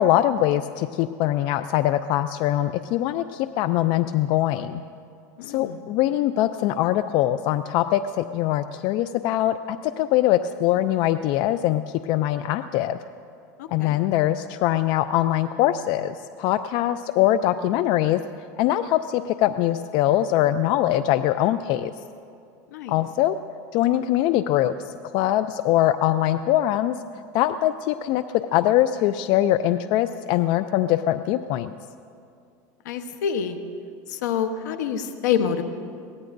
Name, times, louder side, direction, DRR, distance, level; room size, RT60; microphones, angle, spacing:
voice 1, 0.0-4.8 5.4-13.0 13.7-18.2 18.6-21.9 22.9-23.4 23.7-27.0 27.3-31.7, left 13 dB, 55° left, 12 dB, 0.4 m, -22 dB
voice 2, 5.4-5.8 13.6-13.9 22.7-23.0 32.8-33.6 34.1-35.6, left 8 dB, 85° left, 9 dB, 1.0 m, -27 dB
22.5 x 17.5 x 2.6 m, 2.4 s
supercardioid pair, 115°, 9 cm